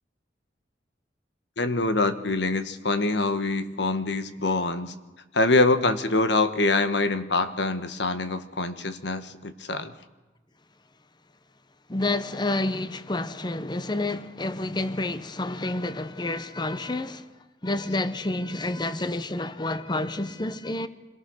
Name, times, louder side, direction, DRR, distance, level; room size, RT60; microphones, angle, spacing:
voice 1, 1.6-4.9 5.3-9.9, left 2 dB, 75° left, 1.5 m, -25 dB
voice 2, 11.9-17.3 17.6-20.9, left 2 dB, 25° left, 0.8 m, -29 dB
26.5 x 18.0 x 6.4 m
head